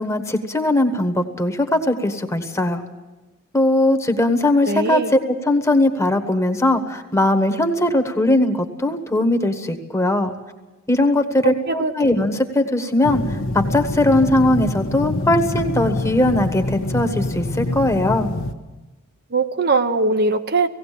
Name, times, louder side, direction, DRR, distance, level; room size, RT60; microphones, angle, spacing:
voice 1, 0.0-2.8 3.5-5.0 5.5-10.3 10.9-13.2 13.5-18.3, left 1 dB, 15° left, 7 dB, 1.3 m, -19 dB
voice 2, 4.7-5.1 11.4-12.1 19.3-20.7, right 3 dB, 45° right, 8 dB, 0.8 m, -21 dB
sound 1, 13.0-18.5, left 2 dB, 70° left, 1.1 m, -25 dB
17.5 x 17.5 x 8.5 m, 1.1 s
head